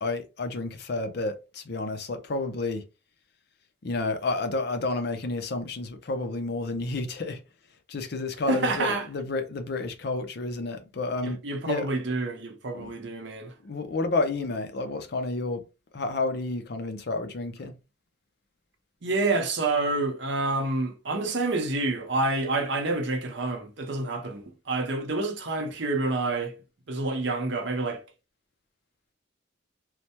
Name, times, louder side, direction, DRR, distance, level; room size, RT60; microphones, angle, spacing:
voice 1, 0.0-2.8 3.8-7.4 7.9-11.4 11.7-11.9 12.7-12.9 13.6-15.6 15.9-17.7, left 3 dB, 50° left, 0.5 m, -30 dB
voice 2, 8.5-9.1 11.2-13.5 19.0-26.5 26.9-28.0, right 3 dB, 60° right, 0.7 m, -28 dB
3.2 x 2.1 x 2.8 m
head